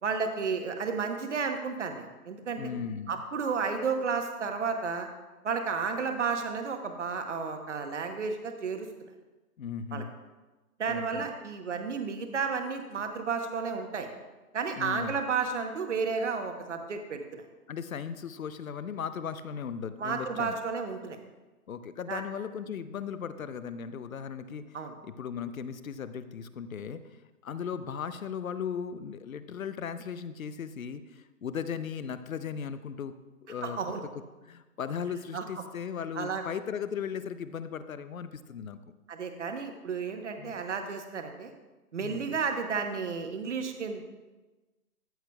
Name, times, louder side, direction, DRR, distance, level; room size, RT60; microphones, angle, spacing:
voice 1, 0.0-2.7 3.1-5.1 5.4-9.1 9.9-10.0 10.8-14.1 14.5-17.4 20.0-21.2 22.1-22.2 24.7-24.9 33.6-34.0 35.3-35.4 36.1-36.4 39.1-41.5 41.9-44.0, right 5 dB, 50° right, 6 dB, 1.0 m, -32 dB
voice 2, 2.6-3.2 9.6-10.1 10.9-11.3 14.7-15.2 17.7-20.6 21.7-24.8 25.0-27.2 27.4-33.1 33.5-33.8 34.5-38.8 40.4-40.6 42.0-42.3, left 7 dB, 60° left, 12 dB, 0.6 m, -37 dB
14.0 x 8.1 x 2.3 m, 1.2 s
hypercardioid pair, 175°, 46 cm